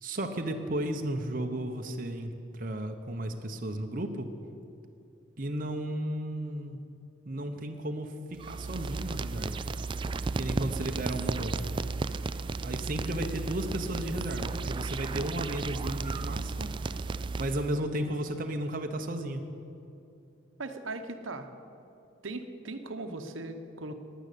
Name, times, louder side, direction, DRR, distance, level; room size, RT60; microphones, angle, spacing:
voice 1, 0.0-4.3 5.4-6.8 7.2-9.6 10.4-11.7 12.6-16.7 17.4-19.4, right 1 dB, 45° right, 4 dB, 0.9 m, -34 dB
sound 1, 8.4-17.8, right 3 dB, 25° right, 0.3 m, -34 dB
voice 2, 20.6-21.5 22.2-23.9, right 2 dB, 80° right, 7 dB, 1.0 m, -38 dB
13.0 x 10.5 x 8.5 m, 2.7 s
head